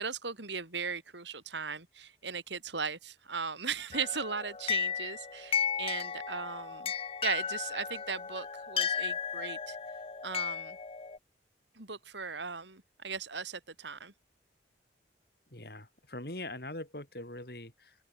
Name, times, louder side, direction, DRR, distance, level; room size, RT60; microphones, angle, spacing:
voice 1, 0.0-6.9 7.2-9.8 10.2-10.8 11.8-14.1, right 5 dB, 80° right, 3.6 m, -37 dB
sound 1, 3.9-11.2, left 7 dB, 30° left, 0.6 m, -35 dB
voice 2, 15.5-18.0, left 1 dB, 55° left, 5.2 m, -42 dB
open air
head